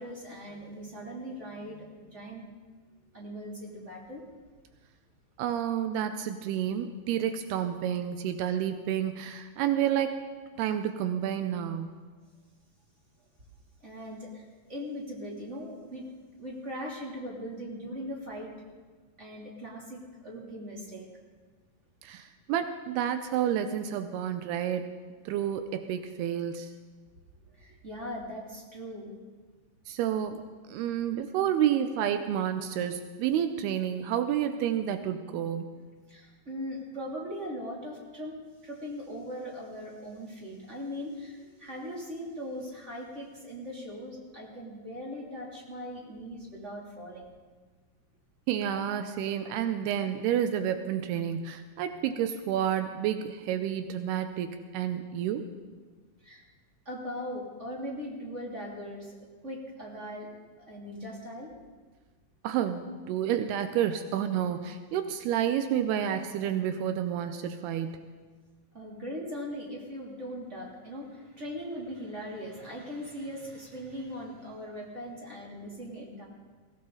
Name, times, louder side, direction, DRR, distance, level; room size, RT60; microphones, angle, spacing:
voice 1, 0.0-2.5 3.1-4.2 13.8-16.1 16.4-18.5 19.2-21.1 27.5-29.1 36.1-47.3 56.2-56.4 56.8-59.2 59.4-60.3 60.6-61.5 68.7-76.2, equal, 20° right, -3 dB, 2.6 m, -40 dB
voice 2, 5.4-10.2 10.6-12.0 22.0-25.0 25.3-26.7 29.9-30.4 30.7-35.8 48.5-55.5 62.4-68.0, right 10 dB, 85° right, 8 dB, 2.7 m, -30 dB
21.5 x 16.5 x 3.9 m, 1.4 s
omnidirectional pair, 4.6 m